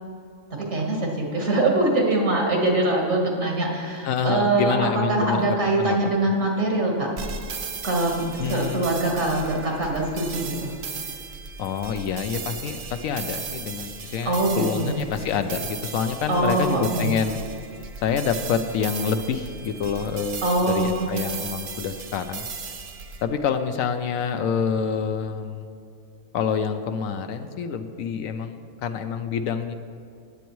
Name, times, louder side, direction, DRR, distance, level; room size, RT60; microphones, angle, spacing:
voice 1, 0.5-7.1 7.8-10.7 14.3-14.9 16.3-17.1 20.4-21.1, right 2 dB, 75° right, -1 dB, 1.9 m, -23 dB
voice 2, 4.0-6.0 8.4-8.9 11.6-17.4 18.0-22.5 23.2-25.7 26.3-29.7, left 6 dB, 80° left, 8 dB, 1.0 m, -27 dB
sound 1, 7.2-23.2, right 5 dB, 55° right, 1.0 m, -36 dB
18.0 x 8.0 x 3.1 m, 2.4 s
omnidirectional pair, 1.4 m